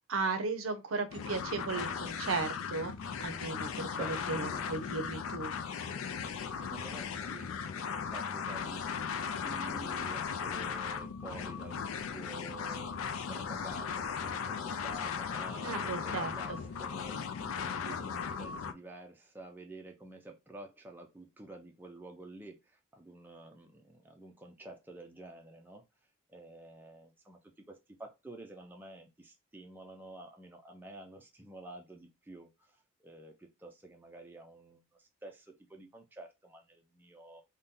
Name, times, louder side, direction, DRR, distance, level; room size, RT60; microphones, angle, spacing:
voice 1, 0.1-2.9 3.2-5.5 15.6-16.6, right 4 dB, 80° right, 0.6 m, -35 dB
sound 1, 1.1-18.7, left 6 dB, 80° left, 0.4 m, -37 dB
voice 2, 3.9-4.8 6.5-9.1 9.4-12.9 13.3-25.8 26.3-32.8 33.0-37.4, right 2 dB, 10° right, 0.4 m, -50 dB
2.7 x 2.2 x 3.5 m
head